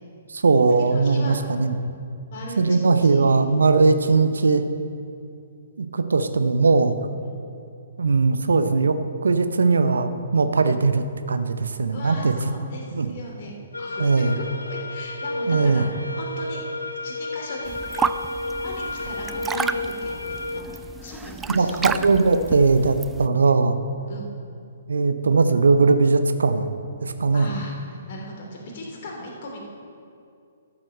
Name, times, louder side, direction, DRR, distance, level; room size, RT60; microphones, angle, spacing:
voice 1, 0.3-1.8 2.6-4.6 5.8-7.0 8.0-9.0 9.2-12.3 12.9-13.1 14.0-14.4 15.5-15.9 21.5-21.7 22.0-23.8 24.9-26.7 27.0-27.5, right 4 dB, 70° right, 10 dB, 0.7 m, -19 dB
voice 2, 0.9-1.4 2.3-3.4 7.2-7.3 10.5-10.7 11.9-13.5 13.8-16.6 17.0-18.0 18.6-20.6 21.0-21.9 24.1-24.3 27.3-29.6, left 1 dB, 45° left, -1 dB, 3.0 m, -38 dB
sound 1, 13.7-20.6, left 2 dB, 85° left, 0.6 m, -31 dB
sound 2, 17.6-23.3, right 6 dB, 10° right, 0.3 m, -31 dB
12.5 x 7.4 x 6.5 m, 2.5 s
figure-of-eight pair, 125°, 0 cm